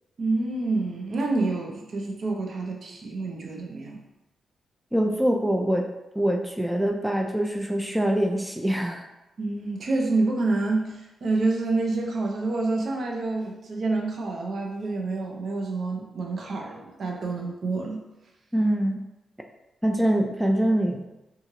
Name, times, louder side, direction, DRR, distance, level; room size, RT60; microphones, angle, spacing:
voice 1, 0.2-4.0 9.4-18.0, right 3 dB, 60° right, 0 dB, 0.5 m, -28 dB
voice 2, 4.9-5.9 6.2-9.1 18.5-19.0 19.8-21.1, right 1 dB, 5° right, 2 dB, 0.3 m, -24 dB
2.6 x 2.4 x 3.0 m, 0.99 s
cardioid pair, 70°, 0 cm